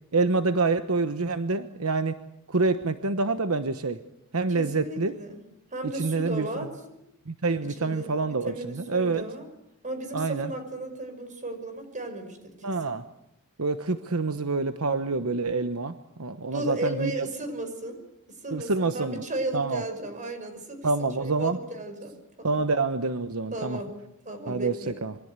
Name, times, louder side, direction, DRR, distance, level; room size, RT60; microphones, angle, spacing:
voice 1, 0.1-2.2 2.5-4.0 4.3-5.2 5.9-6.7 7.3-9.2 10.1-10.5 12.6-13.0 13.6-17.1 18.5-19.2 19.5-19.8 20.8-21.6 22.4-23.8 24.5-25.2, right 3 dB, 75° right, 9 dB, 1.1 m, -27 dB
voice 2, 4.5-5.4 5.7-7.0 7.8-9.5 9.8-12.7 16.5-18.0 18.4-22.6 23.5-23.9 24.3-24.9, right 2 dB, 35° right, 8 dB, 5.6 m, -35 dB
26.5 x 24.0 x 8.2 m, 0.81 s
head